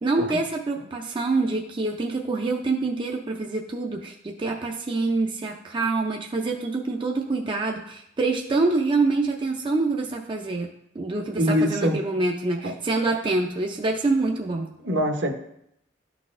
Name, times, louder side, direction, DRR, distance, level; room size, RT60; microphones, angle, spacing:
voice 1, 0.0-10.7 11.0-14.7, right 3 dB, 25° right, 1 dB, 0.4 m, -26 dB
voice 2, 11.3-12.0 12.6-12.7 14.8-15.3, equal, 65° right, 3 dB, 0.9 m, -23 dB
11.5 x 4.0 x 2.5 m, 0.75 s
head